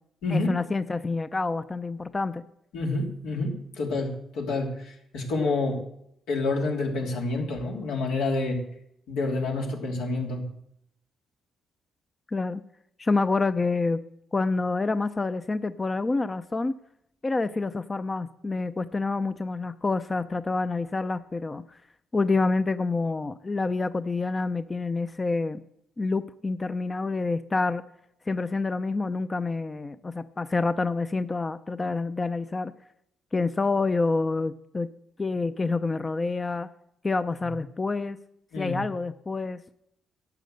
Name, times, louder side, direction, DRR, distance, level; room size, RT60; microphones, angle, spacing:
voice 1, 0.3-2.4 12.3-12.6 13.0-14.0 14.3-16.7 17.2-21.6 22.1-25.6 26.0-27.8 28.3-32.7 33.3-34.9 35.2-36.7 37.0-38.2 38.6-39.6, left 3 dB, 25° left, 12 dB, 0.5 m, -27 dB
voice 2, 2.7-5.8 6.3-8.6 9.1-10.4 38.5-38.8, left 3 dB, 90° left, 0 dB, 2.9 m, -28 dB
11.5 x 8.4 x 7.9 m, 0.75 s
cardioid pair, 90°, 0 cm